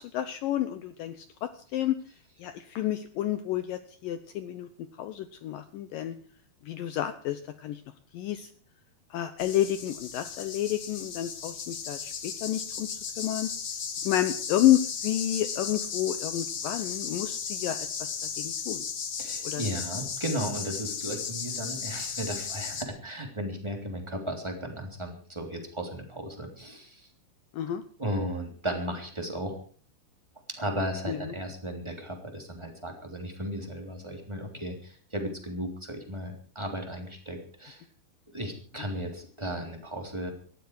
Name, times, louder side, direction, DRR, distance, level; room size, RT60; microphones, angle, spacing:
voice 1, 0.0-2.0 2.4-4.7 5.0-6.2 6.7-7.8 8.1-8.5 9.1-12.9 13.2-13.5 14.0-18.1 18.4-18.8 19.4-19.6 27.5-27.8 31.1-31.2, left 12 dB, 75° left, 11 dB, 2.1 m, -30 dB
sound 1, 9.4-22.8, left 6 dB, 50° left, 1.8 m, -35 dB
voice 2, 19.2-27.1 28.0-29.5 30.5-37.8 38.3-40.3, equal, 10° right, 2 dB, 2.8 m, -35 dB
18.5 x 14.0 x 4.8 m, 0.43 s
omnidirectional pair, 4.8 m